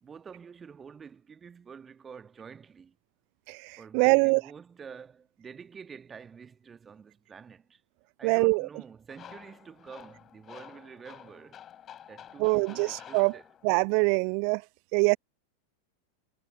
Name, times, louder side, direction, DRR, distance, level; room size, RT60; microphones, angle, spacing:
voice 1, 0.0-3.0 3.8-7.8 8.2-11.6 12.1-13.5, right 6 dB, 20° right, 1.5 m, -48 dB
voice 2, 3.5-4.4 8.2-8.7 12.4-13.3 13.6-14.6 14.9-15.2, right 40 dB or more, 45° right, 0.3 m, -24 dB
sound 1, 9.1-13.9, left 10 dB, 25° left, 7.4 m, -49 dB
figure-of-eight pair, 90°, 0 cm